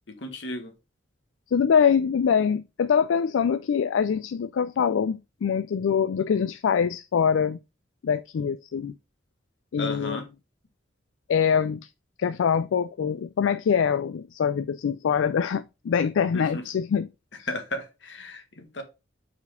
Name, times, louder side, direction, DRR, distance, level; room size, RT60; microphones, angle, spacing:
voice 1, 0.1-0.7 9.8-10.3 16.3-16.6 17.5-18.8, left 1 dB, 70° left, 1.5 m, -34 dB
voice 2, 1.5-7.6 8.0-8.9 9.7-10.2 11.3-11.8 12.2-17.1 17.4-17.5, left 7 dB, 85° left, 0.4 m, -24 dB
4.8 x 4.2 x 4.9 m
head